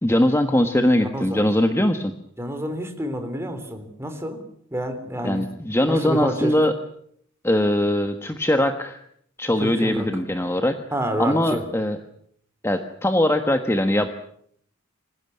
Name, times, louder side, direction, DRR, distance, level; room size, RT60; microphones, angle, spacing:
voice 1, 0.0-2.1 5.2-6.7 7.4-9.0 9.4-10.7 11.2-12.0 12.6-14.1, left 1 dB, 10° left, 7 dB, 1.3 m, -21 dB
voice 2, 1.0-1.5 2.4-4.4 4.7-5.5 5.9-6.5 9.6-10.1 10.9-11.6, equal, 10° right, 7 dB, 3.6 m, -28 dB
26.0 x 16.5 x 9.7 m, 0.68 s
head